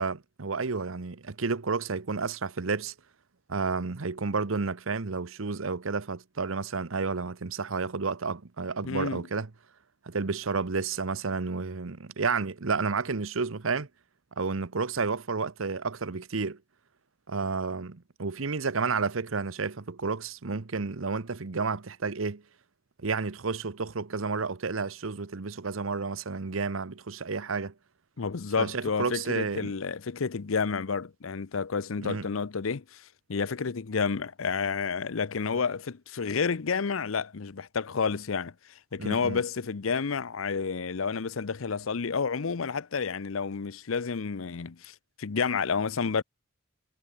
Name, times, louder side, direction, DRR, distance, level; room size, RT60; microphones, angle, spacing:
voice 1, 0.0-2.9 3.5-9.5 10.0-13.9 14.4-16.6 17.3-22.4 23.0-27.7 28.6-29.7 32.0-32.3 39.0-39.4, right 4 dB, 85° right, 0.9 m, -31 dB
voice 2, 8.8-9.3 28.2-33.0 33.3-38.5 38.9-46.2, left 5 dB, 85° left, 0.7 m, -30 dB
head